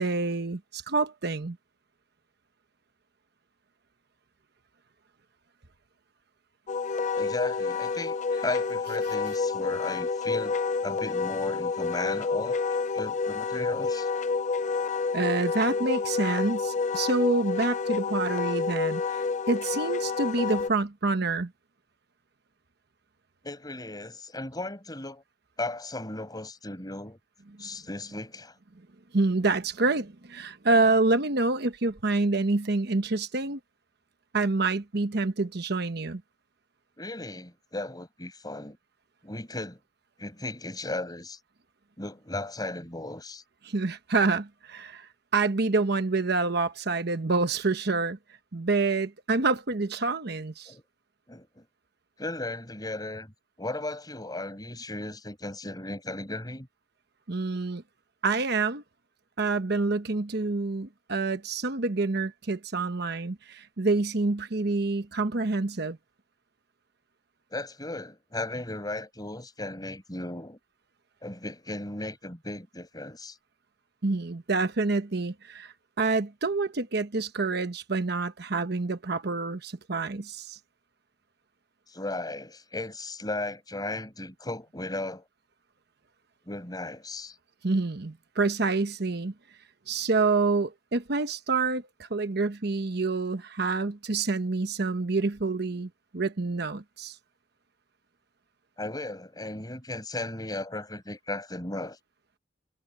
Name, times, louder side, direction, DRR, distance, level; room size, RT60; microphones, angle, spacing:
voice 1, 0.0-1.6 15.1-21.5 29.1-33.6 34.3-36.2 43.6-48.2 48.5-50.7 57.3-57.8 58.2-58.8 59.4-66.0 74.0-80.6 87.6-89.3 89.9-97.2, right 3 dB, 60° right, 1.1 m, -27 dB
Wind instrument woodwind instrument, 6.7-20.7, left 4 dB, 40° left, 0.6 m, -29 dB
voice 2, 7.1-12.6 12.9-14.1 23.4-25.2 25.6-27.2 27.6-28.5 30.7-30.8 37.0-38.8 39.2-39.8 40.2-41.4 42.0-43.4 50.7-50.8 51.3-51.6 52.2-53.3 53.6-56.7 67.5-70.6 71.2-73.4 81.9-85.3 86.5-87.3 98.8-102.0, left 2 dB, 20° left, 5.9 m, -36 dB
head